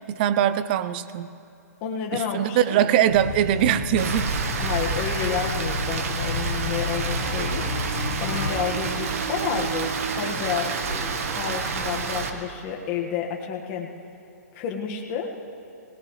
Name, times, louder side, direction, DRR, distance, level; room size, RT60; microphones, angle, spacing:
voice 1, 0.1-1.3 2.1-4.3, right 11 dB, 35° right, 14 dB, 0.5 m, -22 dB
voice 2, 1.8-2.8 4.6-7.6 8.2-13.9 14.5-15.3, left 7 dB, 30° left, 0 dB, 1.6 m, -30 dB
sound 1, 3.1-8.5, left 5 dB, 80° left, 1.3 m, -31 dB
Rain, 4.0-12.3, right 5 dB, 55° right, 1.3 m, -28 dB
20.0 x 20.0 x 3.2 m, 2.7 s
hypercardioid pair, 155°, 9 cm